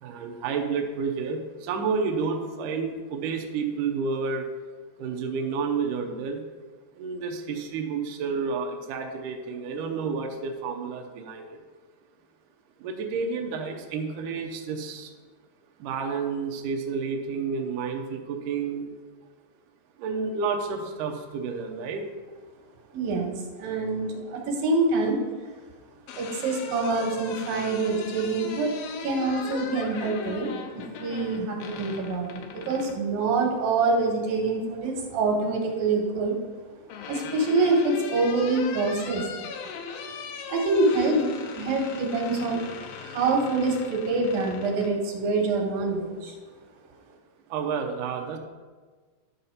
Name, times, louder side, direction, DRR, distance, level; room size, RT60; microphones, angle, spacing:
voice 1, 0.0-4.5 5.0-6.4 7.0-11.4 12.8-15.1 15.8-18.9 20.0-22.1 47.5-48.4, right 5 dB, 85° right, 3 dB, 1.8 m, -30 dB
voice 2, 22.9-25.2 26.2-28.8 29.0-36.3 37.1-39.2 40.5-42.6 43.0-46.3, right 3 dB, 65° right, 1 dB, 2.7 m, -26 dB
sound 1, 25.8-33.0 34.5-35.2 36.4-44.9, left 6 dB, 80° left, 2.3 m, -39 dB
11.0 x 4.0 x 5.7 m, 1.4 s
omnidirectional pair, 4.9 m